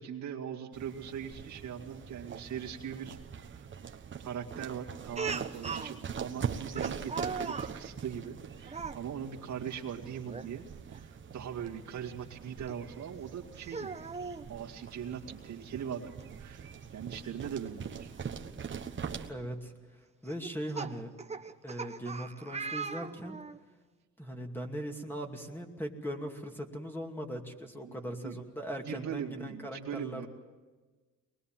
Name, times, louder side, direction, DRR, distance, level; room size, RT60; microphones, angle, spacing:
voice 1, 0.0-3.7 4.2-14.0 14.5-18.1 27.8-28.4 28.9-30.3, right 8 dB, 70° right, 0 dB, 2.2 m, -41 dB
sound 1, 0.7-19.3, right 7 dB, 40° right, 1.4 m, -43 dB
Speech, 5.2-5.9 6.8-7.7 8.7-9.0 10.2-10.5 10.9-11.0 12.7-12.8 13.6-14.5 15.8-15.9 16.2-16.3 18.2-18.3 18.9-19.2 20.3-23.6, right 5 dB, 20° right, 1.0 m, -39 dB
voice 2, 19.3-19.7 20.2-21.1 21.4-23.4 24.2-30.3, equal, 5° left, 3 dB, 2.5 m, -39 dB
23.0 x 21.0 x 7.5 m, 1.3 s
cardioid pair, 90°, 30 cm